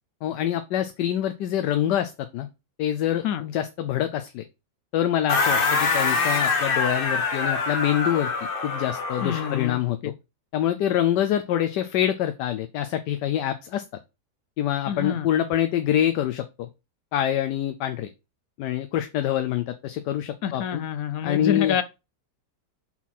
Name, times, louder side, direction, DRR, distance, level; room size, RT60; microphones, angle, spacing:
voice 1, 0.2-2.5 2.8-4.4 4.9-8.3 8.6-10.1 10.5-13.8 14.6-16.7 17.1-18.1 18.6-20.8 21.2-21.8, left 11 dB, 85° left, 1.2 m, -25 dB
sound 1, 5.3-9.7, left 4 dB, 40° left, 1.0 m, -25 dB
voice 2, 9.2-9.8 10.0-10.1 14.9-15.3 20.4-21.8, left 9 dB, 70° left, 0.9 m, -27 dB
5.6 x 4.5 x 4.2 m
omnidirectional pair, 1.8 m